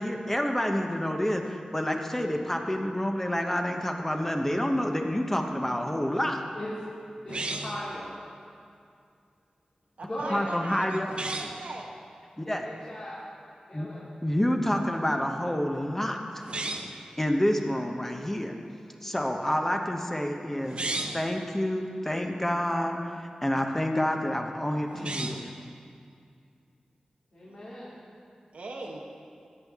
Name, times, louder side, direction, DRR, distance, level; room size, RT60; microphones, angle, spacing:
voice 1, 0.0-6.4 10.3-11.1 12.4-12.7 13.7-13.9 14.2-16.5 17.2-18.6 19.0-25.5, left 1 dB, 15° left, 3 dB, 0.9 m, -28 dB
voice 2, 7.2-8.2 10.0-10.7 12.6-13.2 13.7-14.0 27.3-28.0, left 1 dB, 55° left, -9 dB, 2.3 m, -38 dB
sound 1, 7.3-7.9 11.0-11.6 16.4-17.0 20.6-21.3 24.9-25.5, right 2 dB, 50° right, 0.8 m, -34 dB
voice 3, 10.0-11.9 27.5-27.6 28.5-29.0, right 2 dB, 85° right, -1 dB, 0.9 m, -38 dB
14.0 x 8.9 x 3.6 m, 2.4 s
wide cardioid pair, 70°, 2 cm